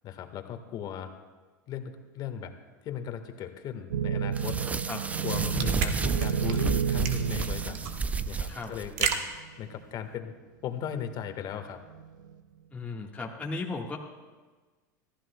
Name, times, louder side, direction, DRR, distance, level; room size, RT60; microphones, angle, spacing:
voice 1, 0.0-1.1 1.7-2.6 2.8-4.6 5.2-7.8 8.2-9.2 9.6-10.3 10.6-11.8, left 9 dB, 45° left, 7 dB, 1.5 m, -37 dB
sound 1, 3.9-8.7 9.4-9.5 10.7-11.2 11.9-12.3, right 8 dB, 80° right, 0.6 m, -31 dB
sound 2, 4.3-9.1, right 4 dB, 15° right, 0.5 m, -32 dB
sound 3, 5.0-10.1, right 7 dB, 60° right, 1.5 m, -34 dB
voice 2, 12.7-14.0, left 3 dB, 15° left, -1 dB, 1.5 m, -35 dB
25.0 x 15.0 x 2.3 m, 1.4 s
hypercardioid pair, 95°, 10 cm